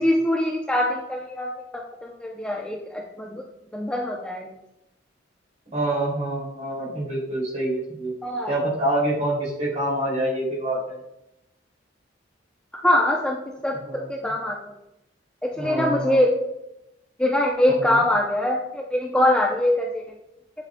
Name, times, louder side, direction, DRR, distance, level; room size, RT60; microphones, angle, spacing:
voice 1, 0.0-3.4 3.7-4.5 8.2-8.5 12.8-13.4 13.6-14.6 15.4-16.3 17.2-20.0, left 1 dB, 5° left, -1 dB, 0.5 m, -23 dB
voice 2, 5.7-8.1 8.5-11.0 13.8-14.1 15.6-16.2 17.7-18.0, right 1 dB, 40° right, -4 dB, 2.7 m, -26 dB
8.6 x 6.8 x 2.2 m, 0.87 s
head